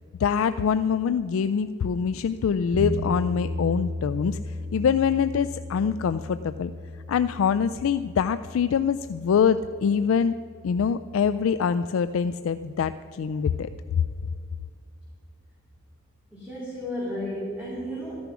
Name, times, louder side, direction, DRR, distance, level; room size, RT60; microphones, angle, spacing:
voice 1, 0.2-6.7 7.1-10.3 10.6-13.7 13.9-14.0, left 7 dB, 75° left, 12 dB, 0.3 m, -24 dB
sound 1, 2.7-12.8, left 1 dB, 25° right, 2.1 m, -36 dB
voice 2, 16.3-18.2, equal, 5° right, -8 dB, 2.8 m, -33 dB
13.5 x 10.5 x 6.1 m, 2.4 s
head